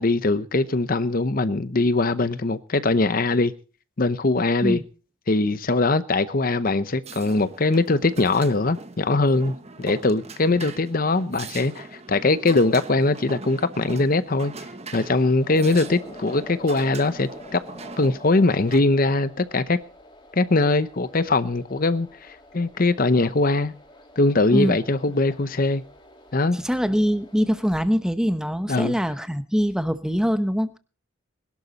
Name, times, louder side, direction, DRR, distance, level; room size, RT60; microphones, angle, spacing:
voice 1, 0.0-3.5 4.0-4.8 5.3-14.5 14.9-17.6 18.0-19.8 20.3-23.7 24.2-25.8 26.3-26.6 28.7-28.9, left 2 dB, 40° left, 0.7 m, -21 dB
sound 1, 7.0-18.8, right 3 dB, 30° right, 1.2 m, -41 dB
sound 2, 15.3-27.8, left 1 dB, 25° left, 3.9 m, -47 dB
voice 2, 26.5-30.8, equal, 5° right, 0.9 m, -23 dB
21.5 x 12.0 x 4.1 m
head